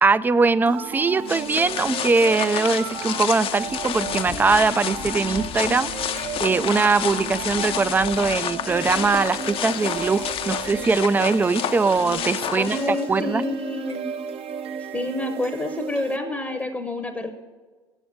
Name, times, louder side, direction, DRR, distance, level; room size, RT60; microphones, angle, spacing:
voice 1, 0.0-13.4, right 4 dB, 15° right, 17 dB, 0.3 m, -21 dB
sound 1, 0.7-16.6, right 6 dB, 45° right, 0.7 m, -34 dB
sound 2, 1.3-13.2, left 10 dB, 40° left, 0.6 m, -30 dB
voice 2, 12.5-14.1 14.9-17.3, left 2 dB, 5° left, 7 dB, 0.8 m, -28 dB
8.0 x 7.7 x 7.6 m, 1.4 s
hypercardioid pair, 85°, 14 cm